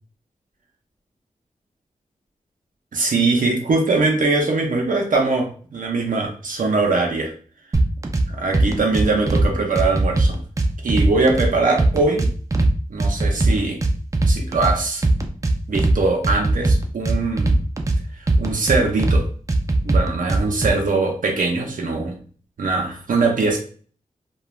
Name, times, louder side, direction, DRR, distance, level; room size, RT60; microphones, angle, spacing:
voice 1, 2.9-7.3 8.3-10.4 10.8-12.3 12.9-13.8 14.3-15.0 15.7-17.6 18.4-19.3 19.8-22.2 22.6-23.6, right 3 dB, 70° right, 1 dB, 0.6 m, -21 dB
sound 1, 7.7-8.2 8.5-9.5 9.8-11.5 11.8-12.7 13.0-14.7 15.0-16.0 16.2-18.0 18.3-19.2 19.5-20.7, right 2 dB, 25° right, 0.4 m, -18 dB
2.4 x 2.2 x 3.1 m, 0.43 s
wide cardioid pair, 125°, 14 cm